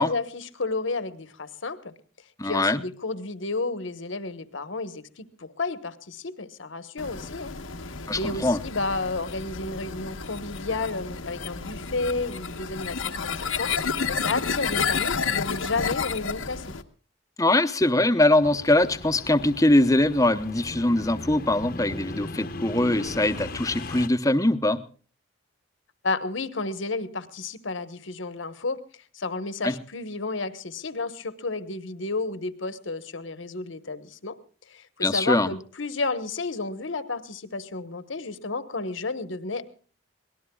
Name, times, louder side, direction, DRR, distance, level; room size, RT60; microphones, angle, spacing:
voice 1, 0.0-1.9 2.4-7.5 7.8-13.7 14.1-16.7 26.0-28.8 29.1-34.4 34.7-39.7, left 3 dB, 70° left, 12 dB, 1.2 m, -31 dB
voice 2, 2.4-2.8 8.1-8.6 17.4-24.8 29.6-29.8 35.0-35.5, left 1 dB, 15° left, 11 dB, 0.8 m, -22 dB
sound 1, 7.0-16.8, left 5 dB, 85° left, 1.2 m, -31 dB
sound 2, 18.4-24.1, left 2 dB, 45° left, 0.9 m, -38 dB
24.0 x 18.5 x 2.3 m, 0.41 s
head